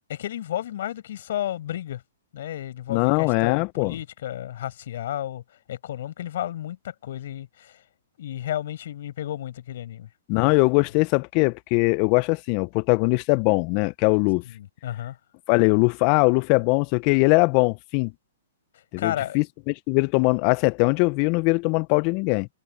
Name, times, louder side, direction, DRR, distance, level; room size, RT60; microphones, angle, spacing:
voice 1, 0.1-2.0 2.3-5.4 5.7-7.8 8.2-10.1 14.5-15.1 19.0-19.4, left 12 dB, 60° left, 6.8 m, -32 dB
voice 2, 2.9-4.0 10.3-14.4 15.5-18.1 18.9-22.5, left 30 dB, 40° left, 0.6 m, -21 dB
hypercardioid pair, 130°, 0 cm